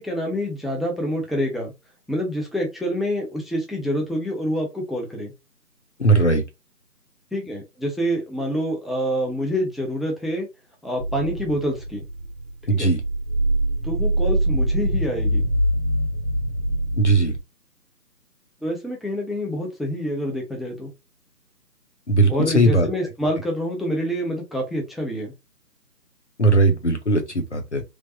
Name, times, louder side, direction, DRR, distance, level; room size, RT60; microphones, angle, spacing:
voice 1, 0.0-1.7 2.1-5.3 7.3-10.5 10.8-12.1 12.7-12.9 13.8-15.5 18.6-20.9 22.3-25.3, equal, ahead, 0.4 m, -27 dB
voice 2, 6.0-6.4 12.7-13.0 17.0-17.3 22.1-22.9 26.4-27.8, right 2 dB, 45° left, 0.6 m, -18 dB
sound 1, 11.0-17.4, right 1 dB, 60° right, 0.7 m, -24 dB
3.2 x 2.0 x 2.6 m
figure-of-eight pair, 175°, 49 cm